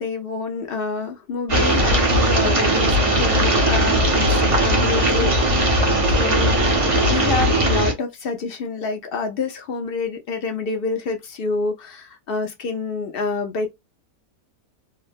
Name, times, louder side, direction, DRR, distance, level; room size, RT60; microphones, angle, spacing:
voice 1, 0.0-5.8 6.1-13.7, left 4 dB, 55° left, 0.6 m, -27 dB
sound 1, 1.5-7.9, right 1 dB, 35° right, 0.5 m, -18 dB
3.2 x 2.1 x 2.5 m
omnidirectional pair, 1.7 m